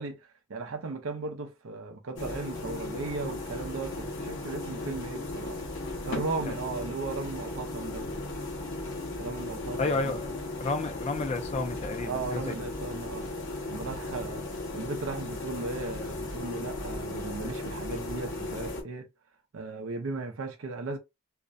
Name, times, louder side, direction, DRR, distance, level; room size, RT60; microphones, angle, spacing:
voice 1, 0.0-5.6 6.0-8.2 9.2-10.2 12.0-13.3 13.7-14.4 14.7-19.1 19.5-21.0, right 3 dB, 70° right, 0.5 m, -36 dB
sound 1, 2.2-18.8, left 2 dB, 60° left, 0.8 m, -36 dB
voice 2, 9.8-10.3 10.6-12.5, left 3 dB, 30° left, 0.4 m, -31 dB
2.4 x 2.1 x 2.5 m
head